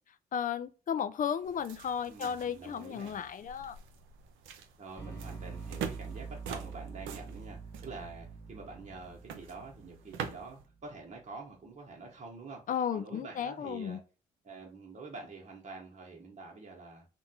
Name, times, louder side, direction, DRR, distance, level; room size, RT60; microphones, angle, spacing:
voice 1, 0.3-3.8 12.7-14.0, left 8 dB, 40° left, 0.4 m, -34 dB
sound 1, 1.4-10.6, right 7 dB, 65° right, 0.5 m, -45 dB
voice 2, 2.1-3.2 4.8-12.6 12.9-14.0 14.4-17.1, right 3 dB, 30° right, 0.9 m, -47 dB
sound 2, 5.0-11.0, right 4 dB, 10° left, 1.3 m, -46 dB
2.8 x 2.2 x 2.6 m
hypercardioid pair, 45°, 21 cm